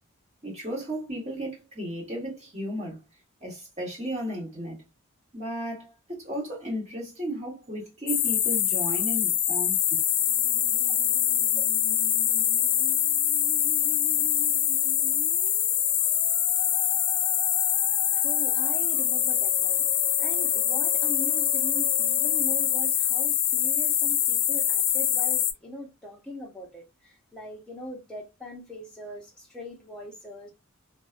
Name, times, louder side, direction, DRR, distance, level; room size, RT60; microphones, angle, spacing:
voice 1, 0.4-3.0 3.4-4.8 5.3-9.7, equal, 30° right, 1.4 m, -34 dB
sound 1, 8.1-25.5, left 10 dB, 60° left, 0.4 m, -24 dB
Musical instrument, 10.0-23.0, right 1 dB, 65° right, 0.7 m, -45 dB
voice 2, 10.4-11.6 12.1-30.5, equal, 5° left, 0.7 m, -43 dB
2.5 x 2.2 x 2.4 m
head